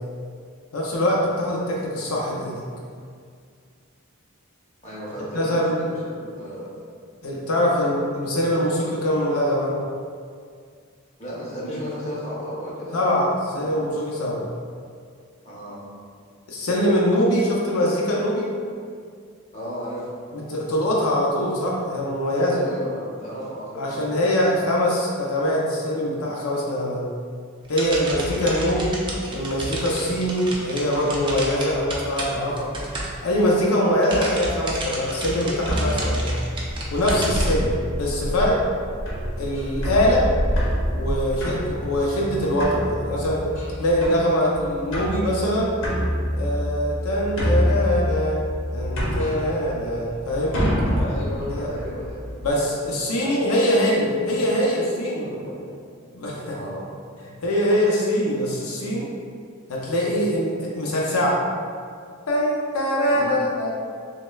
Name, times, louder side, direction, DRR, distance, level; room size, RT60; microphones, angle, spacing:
voice 1, 0.7-2.6 5.3-5.7 7.2-9.7 12.9-14.4 16.5-18.5 20.3-22.6 23.8-27.0 27.7-29.0 29.3-32.7 33.2-36.3 36.9-38.6 39.4-40.2 40.9-43.4 43.8-45.7 46.3-48.4 48.7-50.6 51.5-51.7 52.4-55.3 56.1-56.5 57.4-59.1 59.7-61.4 62.3-63.7, equal, 90° left, -3 dB, 0.6 m, -23 dB
voice 2, 4.8-6.7 7.6-8.0 11.2-13.3 13.6-13.7 15.4-15.8 19.5-20.1 22.5-24.0 27.9-28.5 29.0-29.5 50.9-52.4 53.2-54.7 55.2-55.7 56.5-56.8 63.1-63.4, equal, 35° left, -7 dB, 1.0 m, -35 dB
sound 1, 27.6-33.6 33.9-37.6, right 1 dB, 25° right, 0.5 m, -32 dB
sound 2, 35.6-52.5, equal, 60° left, 0.9 m, -27 dB
6.0 x 2.2 x 2.2 m, 2.2 s
head